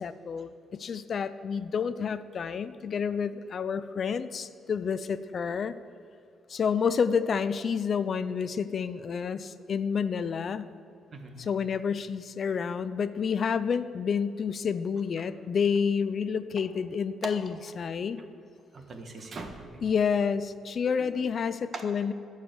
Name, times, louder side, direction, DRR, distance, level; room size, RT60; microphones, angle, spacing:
voice 1, 0.0-5.7 6.5-10.7 11.4-18.2 19.8-22.1, left 6 dB, 50° left, 13 dB, 0.4 m, -29 dB
voice 2, 11.1-11.5 17.2-17.3 18.7-19.8 21.0-21.3 21.7-21.8, right 3 dB, 45° right, 5 dB, 1.3 m, -40 dB
11.0 x 4.8 x 8.0 m, 2.5 s
cardioid pair, 90°, 0 cm